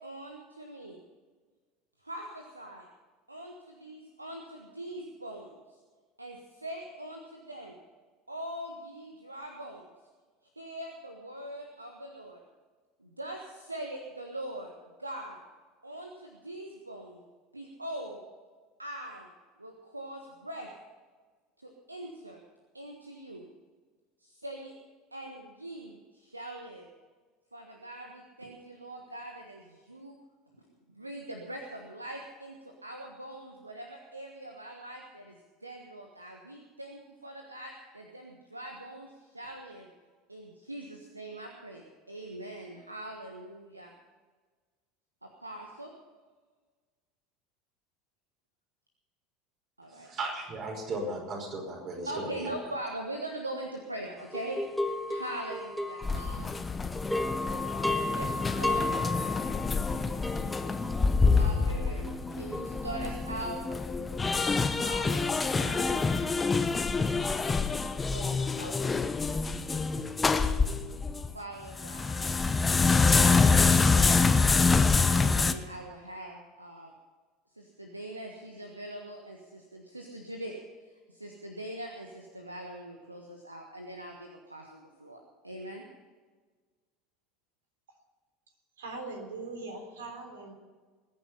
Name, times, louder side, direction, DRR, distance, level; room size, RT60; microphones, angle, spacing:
voice 1, 0.0-1.0 2.0-2.9 3.3-5.6 6.2-7.7 8.3-9.9 10.5-12.4 13.0-14.7 15.0-15.4 15.8-17.2 17.5-18.2 18.8-19.3 19.6-20.7 21.6-22.4 22.7-23.5 24.2-24.7 25.1-26.9 27.5-30.2 30.9-39.9 40.3-43.9 45.2-45.9 49.8-50.1 52.1-56.6 57.9-58.9 61.4-63.6 64.3-66.4 67.2-67.6 68.1-68.8 71.3-74.2 75.1-76.9 77.5-80.5 81.1-85.2 85.4-85.8, right 1 dB, 85° right, 2 dB, 1.4 m, -42 dB
voice 2, 49.9-52.5, right 2 dB, 40° right, 1 dB, 5.2 m, -36 dB
sound 1, 54.3-56.7 56.9-63.3, left 2 dB, ahead, 1.5 m, -34 dB
sound 2, 56.0-71.3 71.7-75.5, left 4 dB, 20° left, 1.0 m, -26 dB
voice 3, 88.8-90.5, right 3 dB, 70° right, 3 dB, 3.5 m, -40 dB
21.5 x 10.0 x 5.6 m, 1.4 s
figure-of-eight pair, 70°, 0 cm